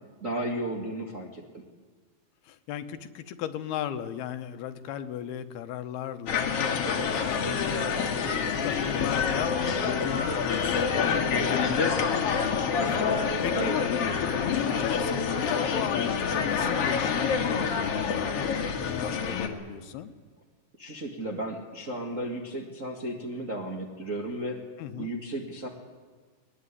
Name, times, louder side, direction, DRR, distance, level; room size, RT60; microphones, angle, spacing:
voice 1, 0.2-1.6 13.5-13.8 20.8-24.6 25.0-25.7, right 1 dB, 40° right, 1 dB, 1.2 m, -34 dB
voice 2, 2.4-13.7 14.3-20.1 24.8-25.1, left 10 dB, 80° left, 10 dB, 3.0 m, -37 dB
sound 1, 6.3-19.5, left 6 dB, 50° left, 2.1 m, -27 dB
22.0 x 19.5 x 9.8 m, 1.5 s
omnidirectional pair, 4.6 m